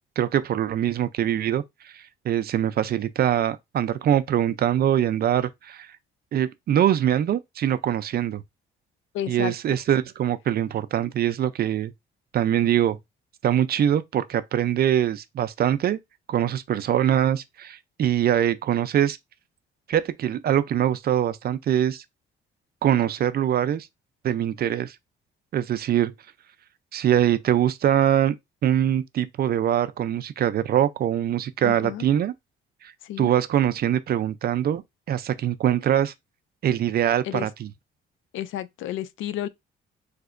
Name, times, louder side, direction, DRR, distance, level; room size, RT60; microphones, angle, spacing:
voice 1, 0.2-5.9 6.3-8.4 9.3-11.9 12.3-13.0 13.4-16.0 16.3-19.2 19.9-22.0 22.8-23.9 24.2-25.0 25.5-26.1 26.9-28.4 28.6-32.3 33.2-34.8 35.1-36.1 36.6-37.7, right 10 dB, 50° right, 0.4 m, -23 dB
voice 2, 9.1-9.5 31.6-32.1 33.0-33.3 37.2-37.5 38.3-39.5, left 12 dB, 80° left, 0.4 m, -31 dB
3.3 x 2.8 x 2.4 m
cardioid pair, 90°, 20 cm